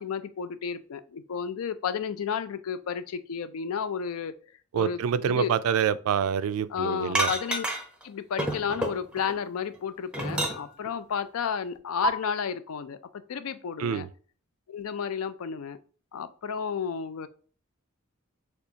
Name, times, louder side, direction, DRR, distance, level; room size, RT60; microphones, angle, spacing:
voice 1, 0.0-4.3 4.7-5.5 6.7-7.6 8.0-13.0 13.3-14.1 14.7-15.8 16.1-17.3, left 7 dB, 85° left, 0.4 m, -32 dB
voice 2, 4.7-7.3 13.8-14.1, right 8 dB, 80° right, 0.3 m, -26 dB
sound 1, 7.1-8.0 8.4-9.3 9.7-10.9 12.0-12.1, right 1 dB, 5° right, 0.5 m, -29 dB
6.6 x 2.3 x 2.8 m
head